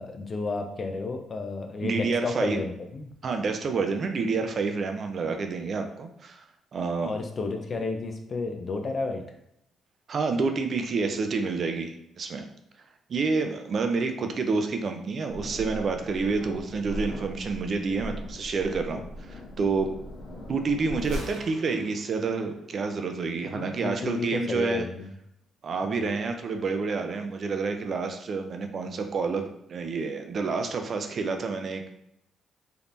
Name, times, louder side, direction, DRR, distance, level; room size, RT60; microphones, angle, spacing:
voice 1, 0.0-3.1 7.0-9.2 23.5-25.1 25.8-26.1, left 3 dB, 40° left, 4 dB, 0.5 m, -32 dB
voice 2, 1.8-2.6 3.2-6.4 6.7-7.1 10.1-12.5 13.1-20.0 20.5-24.8 25.6-31.9, right 4 dB, 50° right, 5 dB, 0.4 m, -28 dB
sound 1, 15.3-21.2, equal, 80° left, 1.4 m, -39 dB
Gunshot gunfire, 21.0-23.0, right 1 dB, 85° right, 0.8 m, -43 dB
3.5 x 2.8 x 2.5 m, 0.78 s
cardioid pair, 90°, 0 cm